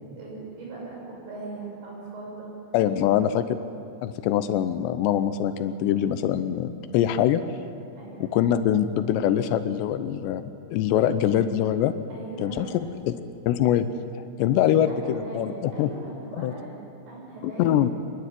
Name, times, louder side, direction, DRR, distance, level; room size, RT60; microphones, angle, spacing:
voice 1, 0.2-2.5 7.9-8.3 10.8-10.9 12.1-12.8 14.8-17.8, right 3 dB, 75° right, -4 dB, 8.9 m, -40 dB
voice 2, 2.7-3.4 4.0-7.4 8.2-10.4 10.7-11.9 12.4-12.7 13.1-13.2 13.5-13.9 14.4-15.9 16.4-16.5 17.4-17.9, left 10 dB, 80° left, 11 dB, 2.8 m, -23 dB
25.5 x 11.5 x 9.9 m, 2.8 s
omnidirectional pair, 5.2 m